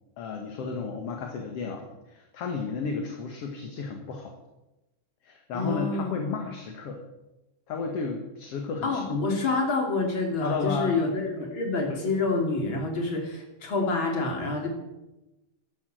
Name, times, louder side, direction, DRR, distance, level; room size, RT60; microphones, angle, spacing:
voice 1, 0.2-4.3 5.2-7.0 7.7-9.3 10.4-11.0 11.9-12.0, left 4 dB, 55° left, 3 dB, 2.4 m, -32 dB
voice 2, 5.5-6.3 8.8-14.7, left 3 dB, 40° left, 2 dB, 3.6 m, -28 dB
14.5 x 13.0 x 7.7 m, 1.0 s
omnidirectional pair, 3.7 m